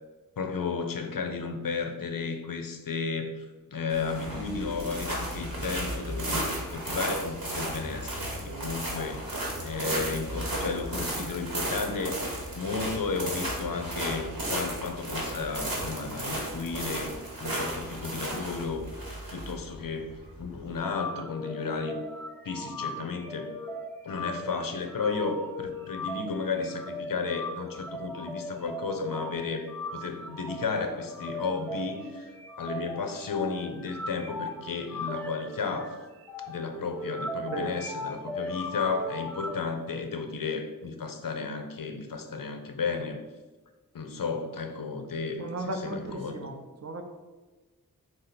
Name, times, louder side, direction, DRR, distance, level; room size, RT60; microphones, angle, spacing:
voice 1, 0.4-3.4 3.7-8.3 8.6-9.3 9.6-12.2 12.5-19.0 19.3-20.1 20.4-22.0 22.4-23.5 24.0-32.3 32.6-36.0 36.5-43.2 43.9-45.4 45.7-46.6, left 4 dB, 70° left, 6 dB, 0.5 m, -33 dB
sound 1, 3.9-20.8, right 1 dB, 75° right, 1.0 m, -34 dB
voice 2, 8.4-9.0 9.6-9.7 37.5-37.8 45.4-47.0, right 2 dB, 45° right, 5 dB, 0.5 m, -37 dB
sound 2, 20.8-39.6, left 1 dB, 5° left, 0.4 m, -38 dB
3.4 x 2.7 x 4.2 m, 1.2 s
wide cardioid pair, 50°, 35 cm